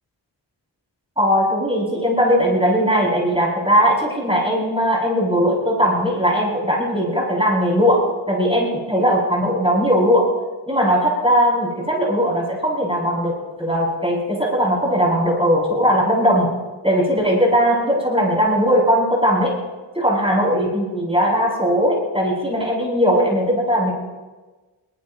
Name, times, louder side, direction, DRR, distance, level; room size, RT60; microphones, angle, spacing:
voice 1, 1.2-10.3 10.7-16.5 16.8-19.5 19.9-23.9, equal, 10° right, -4 dB, 7.4 m, -19 dB
22.0 x 19.5 x 3.1 m, 1.3 s
cardioid pair, 40°, 44 cm